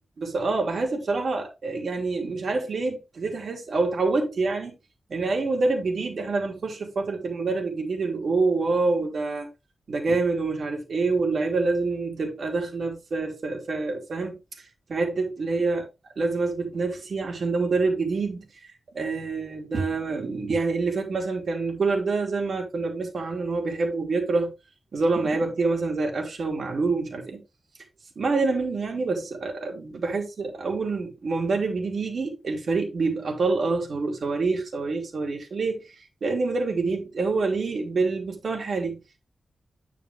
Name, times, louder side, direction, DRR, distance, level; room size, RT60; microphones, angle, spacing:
voice 1, 0.2-4.7 5.1-9.5 9.9-14.4 14.9-15.8 16.2-18.4 18.9-24.5 24.9-27.4 28.2-35.8 36.2-39.0, right 3 dB, 60° right, 2.9 m, -26 dB
9.5 x 5.1 x 3.6 m
wide cardioid pair, 140°, 0 cm